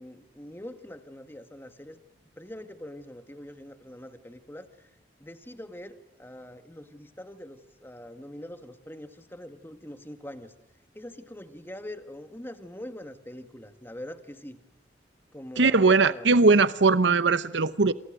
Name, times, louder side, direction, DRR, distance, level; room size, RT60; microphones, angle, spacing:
voice 1, 0.0-2.0 2.4-4.9 5.2-10.5 10.9-14.6 15.3-16.5, left 1 dB, 10° left, 1.9 m, -43 dB
voice 2, 15.6-17.9, right 4 dB, 75° right, 0.9 m, -20 dB
28.0 x 27.5 x 6.5 m
head